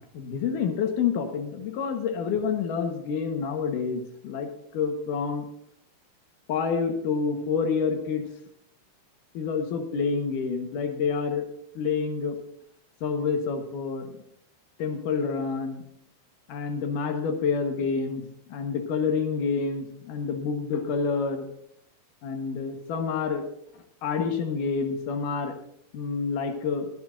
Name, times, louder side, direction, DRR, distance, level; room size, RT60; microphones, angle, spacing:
voice 1, 0.0-5.5 6.5-8.3 9.3-11.4 11.8-12.4 13.0-14.2 14.8-15.9 16.5-21.5 22.2-23.5 24.0-25.5 25.9-26.9, left 5 dB, 80° left, 4 dB, 2.9 m, -28 dB
25.0 x 8.9 x 2.6 m, 0.71 s
omnidirectional pair, 3.7 m